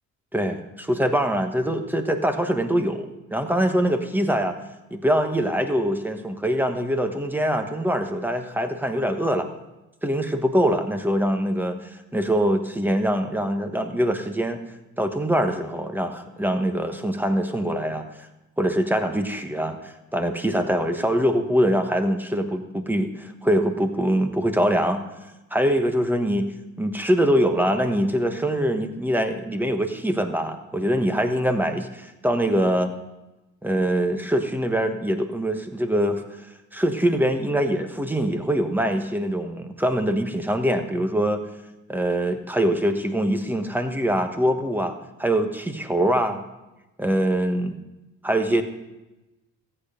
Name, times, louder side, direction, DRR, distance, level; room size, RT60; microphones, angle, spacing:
voice 1, 0.3-4.6 4.9-9.5 10.0-14.6 15.0-18.0 18.6-25.0 25.5-26.5 26.8-32.9 33.6-36.2 36.7-41.4 41.9-46.4 47.0-47.8 48.2-48.6, equal, 5° right, 6 dB, 1.3 m, -23 dB
14.5 x 8.9 x 5.1 m, 1.0 s
cardioid pair, 90°, 30 cm